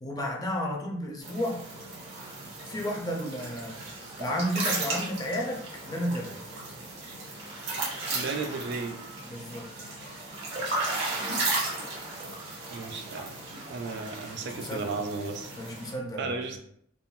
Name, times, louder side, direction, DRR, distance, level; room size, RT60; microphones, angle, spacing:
voice 1, 0.0-1.6 2.6-6.4 9.3-9.7 14.6-14.9 15.6-16.5, equal, 20° left, 1 dB, 0.4 m, -32 dB
sound 1, 1.2-15.9, right 2 dB, 80° right, 1.2 m, -35 dB
voice 2, 8.1-9.0 12.7-13.4 13.7-15.5 16.2-16.6, right 4 dB, 60° right, 5 dB, 0.4 m, -34 dB
3.6 x 2.0 x 2.3 m, 0.67 s
head